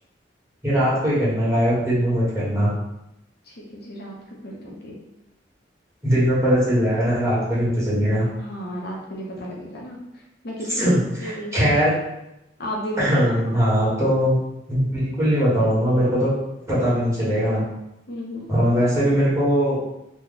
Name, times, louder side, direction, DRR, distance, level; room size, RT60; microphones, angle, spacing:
voice 1, 0.6-2.7 6.0-8.3 10.7-11.9 13.0-14.4 14.7-16.3 16.7-17.6 18.5-19.8, equal, 15° right, -9 dB, 1.3 m, -20 dB
voice 2, 3.5-4.1 4.4-5.0 8.4-10.9 11.2-11.5 12.6-13.6 18.1-18.5, equal, 60° left, -3 dB, 0.7 m, -34 dB
3.0 x 2.2 x 3.7 m, 0.88 s
head